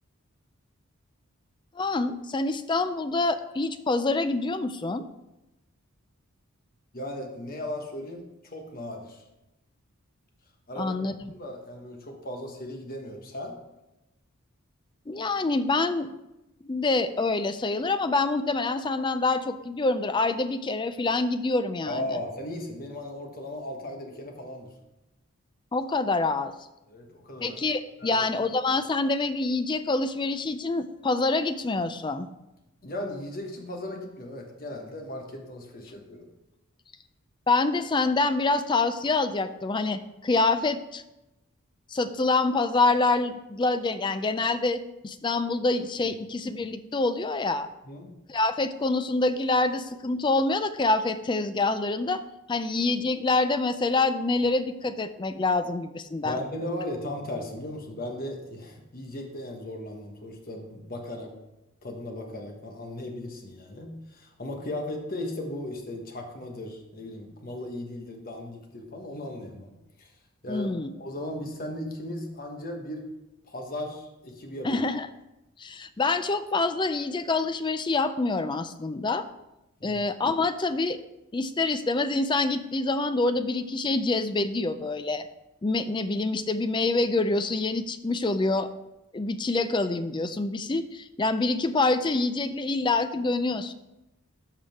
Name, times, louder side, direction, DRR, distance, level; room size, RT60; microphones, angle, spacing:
voice 1, 1.8-5.0 10.8-11.3 15.1-16.1 16.6-22.0 25.7-26.5 27.4-32.3 37.5-41.0 41.9-47.7 48.3-52.2 52.5-56.4 70.5-70.9 74.6-75.1 75.6-79.2 79.8-81.0 81.3-85.3 85.6-88.7 89.1-93.7, left 3 dB, 20° left, 11 dB, 0.3 m, -26 dB
voice 2, 6.9-9.2 10.7-10.9 11.3-13.5 21.9-24.7 26.9-27.6 28.0-28.2 32.8-36.3 47.8-48.1 56.2-61.3 61.8-70.1 70.4-73.1 73.4-74.7 79.8-80.0, left 1 dB, 40° left, 2 dB, 1.2 m, -37 dB
13.0 x 5.0 x 3.5 m, 0.95 s
head